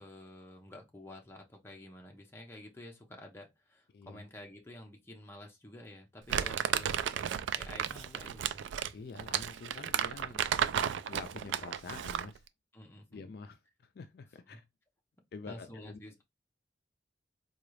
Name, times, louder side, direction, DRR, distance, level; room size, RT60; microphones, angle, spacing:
voice 1, 0.0-6.9 7.5-8.7 12.7-13.3 14.5-14.6 15.5-16.2, left 1 dB, 15° left, 0.7 m, -50 dB
voice 2, 3.9-4.3 8.9-12.5 13.1-14.6 15.3-16.0, left 4 dB, 55° left, 0.4 m, -48 dB
Crumpling crinkling, 6.3-12.4, right 9 dB, 85° right, 0.3 m, -33 dB
3.8 x 2.3 x 3.1 m
head